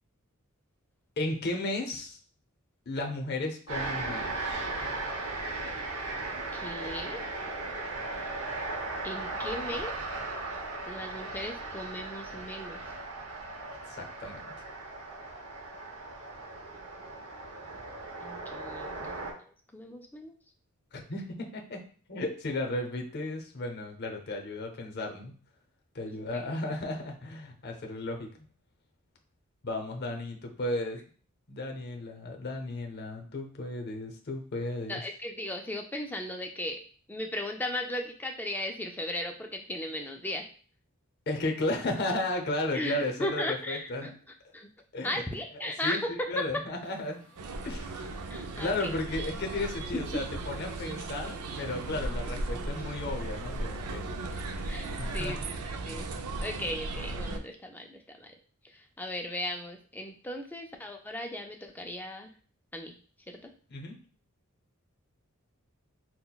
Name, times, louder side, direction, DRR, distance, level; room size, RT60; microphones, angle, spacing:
voice 1, 1.2-2.2 2.9-4.7 13.9-14.4 19.0-19.1 20.9-21.8 22.1-25.3 25.9-28.5 29.6-31.0 31.5-35.0 41.3-44.1 44.9-45.2 45.5-47.2 47.6-48.0 48.6-54.1 55.0-55.4 63.7-64.0, left 2 dB, 50° left, 3 dB, 0.7 m, -34 dB
sound 1, 3.7-19.3, right 2 dB, 70° right, 0.9 m, -37 dB
voice 2, 6.5-7.2 9.0-9.9 10.9-12.8 18.2-19.2 19.7-20.3 26.1-26.4 34.9-36.8 37.1-40.5 42.7-44.2 44.5-44.7 45.0-46.6 48.3-48.9 50.3-50.4 54.7-55.5 55.9-56.1 56.4-58.3 58.6-62.3 62.7-62.9 63.3-63.5, left 1 dB, 10° left, 3 dB, 0.3 m, -36 dB
sound 2, 46.8-55.3, right 1 dB, 40° right, 1.5 m, -57 dB
sound 3, 47.4-57.4, right 2 dB, 90° right, 0.4 m, -36 dB
5.6 x 2.1 x 2.3 m, 0.43 s
head